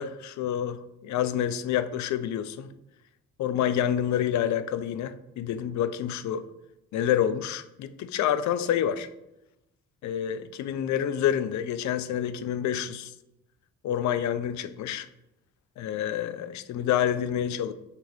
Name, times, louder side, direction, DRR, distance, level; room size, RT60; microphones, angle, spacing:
voice 1, 0.0-2.7 3.4-6.4 6.9-9.1 10.0-13.1 13.8-15.1 15.8-17.7, left 10 dB, 55° left, 12 dB, 0.5 m, -28 dB
5.8 x 3.0 x 3.0 m, 0.90 s
hypercardioid pair, 45°, 35 cm